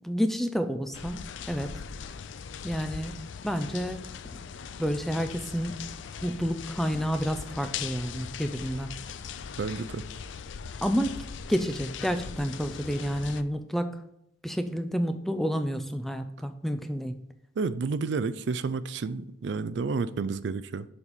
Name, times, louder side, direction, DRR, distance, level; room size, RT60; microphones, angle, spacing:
voice 1, 0.0-1.7 2.6-4.1 4.8-5.8 6.2-8.9 10.8-11.2 11.5-14.0 14.4-17.2, equal, ahead, 8 dB, 0.4 m, -30 dB
sound 1, 0.9-13.4, left 7 dB, 75° left, 0.4 m, -40 dB
voice 2, 9.6-10.0 17.6-20.9, right 4 dB, 65° right, 15 dB, 0.4 m, -30 dB
7.2 x 4.2 x 5.0 m, 0.81 s
head